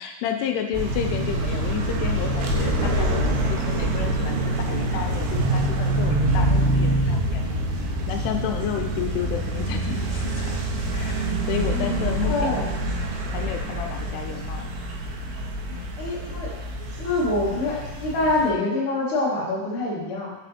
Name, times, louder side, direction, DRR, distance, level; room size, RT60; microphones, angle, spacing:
voice 1, 0.0-7.4 7.8-10.6 10.9-13.1 13.3-14.7 15.7-15.9, left 9 dB, 85° left, 4 dB, 2.5 m, -31 dB
sound 1, 0.7-18.5, right 1 dB, 85° right, 2.9 m, -25 dB
voice 2, 11.5-12.7 14.0-14.1 16.0-16.5 17.0-20.3, left 2 dB, 55° left, -6 dB, 1.4 m, -26 dB
6.1 x 4.2 x 4.1 m, 1.1 s
omnidirectional pair, 4.8 m